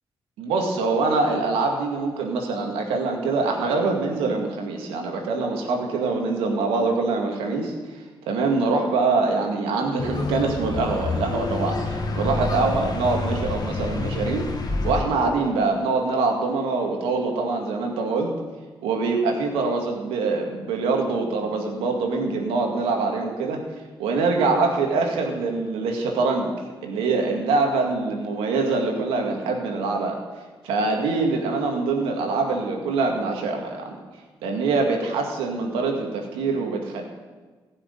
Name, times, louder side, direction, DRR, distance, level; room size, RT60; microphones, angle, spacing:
voice 1, 0.4-7.7 8.3-14.4 14.8-18.4 18.8-23.6 24.0-26.5 26.8-30.2 30.6-34.0 34.4-37.0, right 3 dB, 90° right, 2 dB, 2.1 m, -24 dB
sound 1, 10.0-15.0, left 3 dB, 45° left, 2.0 m, -28 dB
15.5 x 6.6 x 9.1 m, 1.3 s
supercardioid pair, 55°, 9 cm